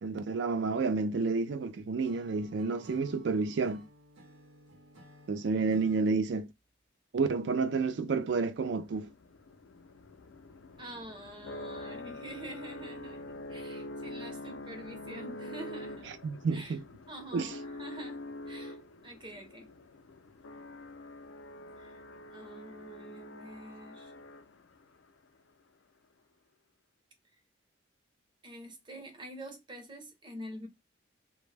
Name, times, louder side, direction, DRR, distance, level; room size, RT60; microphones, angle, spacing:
voice 1, 0.0-3.8 5.3-6.5 7.1-9.1 16.2-16.8 17.3-17.5, right 4 dB, 65° right, 0.4 m, -30 dB
Acoustic guitar / Strum, 2.0-6.1, equal, 85° right, 0.8 m, -55 dB
sound 1, 8.6-24.9, left 1 dB, 80° left, 0.4 m, -45 dB
voice 2, 10.8-16.2 16.5-16.8 17.1-18.2 18.5-18.8 19.0-19.7 21.8-22.0 22.3-24.1 28.4-30.7, right 1 dB, 25° right, 0.6 m, -46 dB
2.2 x 2.0 x 3.2 m
head